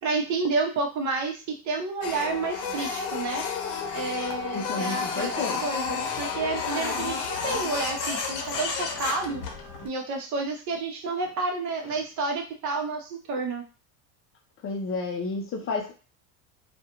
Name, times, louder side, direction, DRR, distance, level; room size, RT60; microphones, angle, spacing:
voice 1, 0.0-3.4 3.9-9.4 9.8-13.6, right 3 dB, 45° right, 2 dB, 0.8 m, -30 dB
Printer, 2.0-9.9, left 5 dB, 65° left, 0.8 m, -31 dB
voice 2, 4.5-5.6 14.6-15.9, left 4 dB, 30° left, 1 dB, 0.5 m, -31 dB
2.3 x 2.2 x 2.9 m, 0.34 s
supercardioid pair, 105°, 42 cm